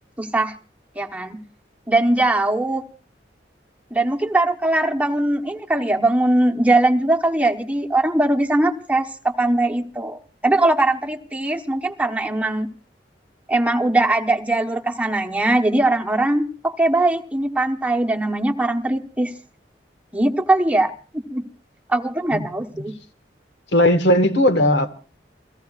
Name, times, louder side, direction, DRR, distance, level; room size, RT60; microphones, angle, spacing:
voice 1, 0.2-0.5 0.9-1.4 1.9-2.8 3.9-12.7 13.5-19.3 20.1-21.4 21.9-22.9, right 2 dB, 10° right, 1.1 m, -20 dB
voice 2, 23.7-24.9, left 1 dB, 70° left, 1.6 m, -17 dB
29.0 x 17.0 x 2.4 m
head